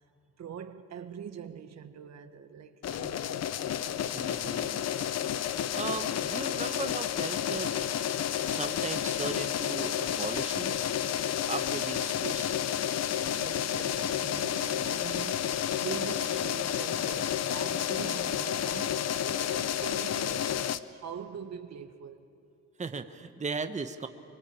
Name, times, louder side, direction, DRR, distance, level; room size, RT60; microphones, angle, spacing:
voice 1, 0.4-3.4 13.1-22.2, right 7 dB, 60° right, 1.4 m, -43 dB
sound 1, 2.8-20.8, left 10 dB, 60° left, 0.8 m, -31 dB
voice 2, 4.1-4.9 5.7-7.9 8.4-11.0 11.5-12.7 22.8-24.1, right 4 dB, 25° right, 1.1 m, -37 dB
24.0 x 23.0 x 8.8 m
cardioid pair, 90°, 30 cm